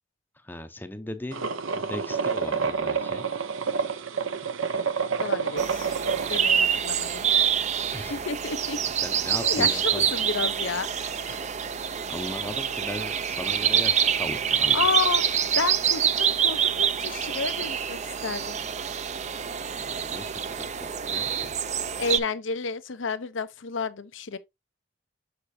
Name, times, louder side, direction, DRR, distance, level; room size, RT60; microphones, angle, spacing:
voice 1, 0.4-1.5 1.8-3.3 7.9-8.2 9.0-10.1 12.1-14.8 19.7-21.6, left 1 dB, 10° left, 0.6 m, -38 dB
sound 1, 1.3-6.4, right 5 dB, 80° right, 0.7 m, -28 dB
voice 2, 5.2-6.0 6.3-7.3 8.1-8.8 9.4-11.4 14.7-18.6 22.0-24.4, left 5 dB, 70° left, 0.7 m, -31 dB
sound 2, 5.6-22.2, right 8 dB, 35° right, 0.5 m, -26 dB
6.5 x 6.0 x 2.7 m
head